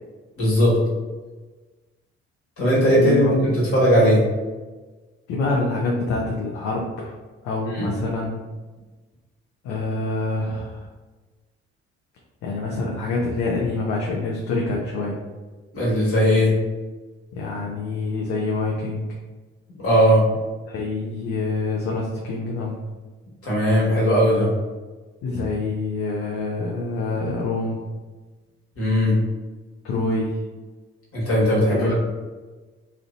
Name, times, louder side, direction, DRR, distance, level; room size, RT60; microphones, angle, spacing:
voice 1, 0.4-0.8 2.6-4.2 7.7-7.9 15.7-16.5 19.7-20.2 23.4-24.5 28.8-29.2 31.1-31.9, equal, 45° left, -6 dB, 1.3 m, -18 dB
voice 2, 3.0-3.3 5.3-7.1 7.4-8.4 9.6-10.9 12.4-15.2 17.3-19.1 20.7-22.8 25.2-27.8 29.8-30.4 31.7-31.9, left 3 dB, 65° left, -2 dB, 0.5 m, -26 dB
2.4 x 2.1 x 2.5 m, 1.3 s
hypercardioid pair, 45°, 31 cm